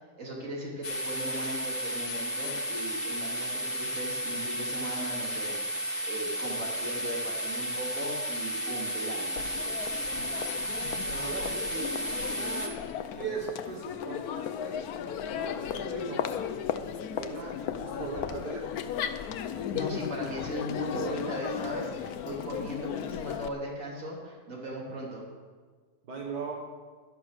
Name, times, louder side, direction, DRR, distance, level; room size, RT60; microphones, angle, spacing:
voice 1, 0.2-9.4 19.7-25.2, right 1 dB, 50° right, -2 dB, 3.1 m, -38 dB
sound 1, 0.8-12.7, equal, 35° left, 1.4 m, -33 dB
Crowd, 9.4-23.5, left 8 dB, 70° left, 1.1 m, -35 dB
voice 2, 11.0-12.0 12.4-12.7 13.2-14.9 15.3-16.3 17.1-18.7 26.1-26.6, right 5 dB, 85° right, 0 dB, 2.1 m, -39 dB
11.5 x 11.0 x 6.4 m, 1.5 s
omnidirectional pair, 1.8 m